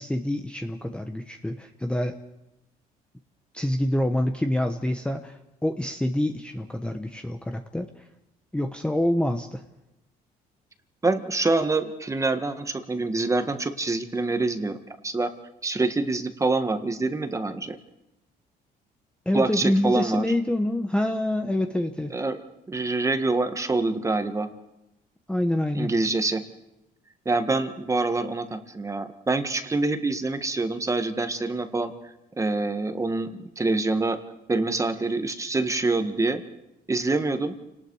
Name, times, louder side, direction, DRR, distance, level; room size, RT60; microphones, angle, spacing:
voice 1, 0.0-2.2 3.5-7.9 8.5-9.6 19.3-22.1 25.3-25.9, left 1 dB, 5° left, 5 dB, 1.1 m, -26 dB
voice 2, 11.0-14.8 15.0-15.3 15.6-17.8 19.3-20.2 22.1-22.4 22.7-24.5 25.7-26.4 27.2-31.9 32.4-33.3 33.6-34.2 34.5-36.4 36.9-37.5, right 3 dB, 20° right, 8 dB, 1.7 m, -25 dB
29.0 x 19.0 x 4.8 m, 0.90 s
cardioid pair, 110°, 17 cm